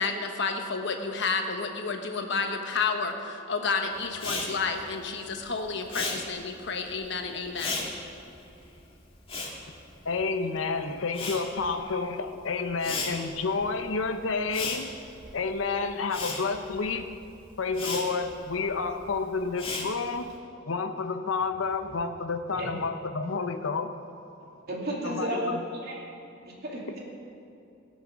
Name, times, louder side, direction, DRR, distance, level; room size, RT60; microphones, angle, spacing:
voice 1, 0.0-7.9, left 4 dB, 65° left, 5 dB, 1.1 m, -30 dB
Respiratory sounds, 4.1-10.6 10.9-20.3, left 3 dB, 30° left, 2.0 m, -37 dB
voice 2, 10.0-14.9 15.3-17.1 17.6-20.3 20.6-23.9 25.0-25.6, left 4 dB, 85° left, 8 dB, 0.8 m, -30 dB
voice 3, 24.6-26.1 26.4-27.0, right 1 dB, 55° right, -3 dB, 2.5 m, -33 dB
17.5 x 6.3 x 6.1 m, 2.7 s
head